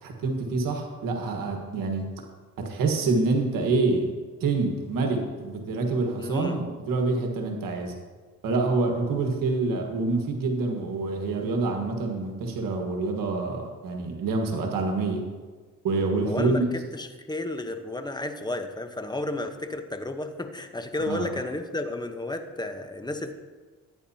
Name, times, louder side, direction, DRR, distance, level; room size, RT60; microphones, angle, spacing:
voice 1, 0.0-2.0 2.6-4.1 4.4-7.9 8.4-15.2 15.8-16.7 21.0-21.3, right 3 dB, 80° right, 2 dB, 1.6 m, -26 dB
voice 2, 6.2-6.6 9.1-9.3 16.2-23.3, left 2 dB, 15° left, 7 dB, 1.0 m, -32 dB
14.5 x 9.3 x 2.8 m, 1.4 s
cardioid pair, 70°, 33 cm